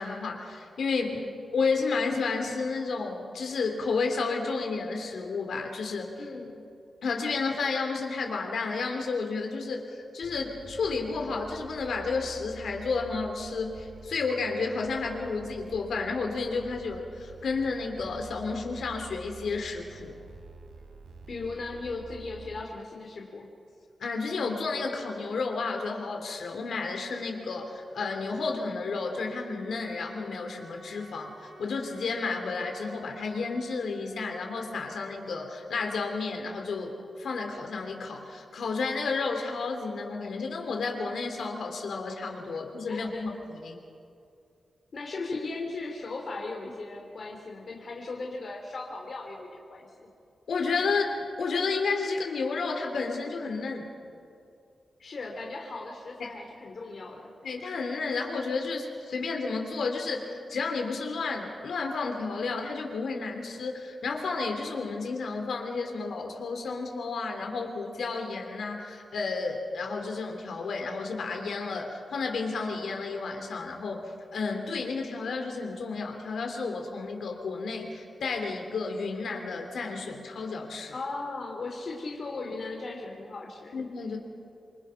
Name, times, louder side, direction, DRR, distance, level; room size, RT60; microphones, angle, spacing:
voice 1, 0.0-1.1 1.5-6.1 7.0-20.1 24.0-43.3 43.6-43.8 50.5-53.9 56.2-56.3 57.4-80.9 83.7-84.2, left 4 dB, 90° left, 3 dB, 3.2 m, -31 dB
voice 2, 1.0-1.4 6.2-6.6 21.3-23.5 42.9-43.4 44.9-50.1 55.0-57.3 80.9-83.7, left 3 dB, 50° left, 0 dB, 3.0 m, -37 dB
sound 1, 10.2-22.6, right 4 dB, 85° right, 3.5 m, -48 dB
Wind instrument woodwind instrument, 27.2-35.9, right 2 dB, 45° right, 5.3 m, -52 dB
27.0 x 25.0 x 5.8 m, 2.5 s
wide cardioid pair, 140°, 0 cm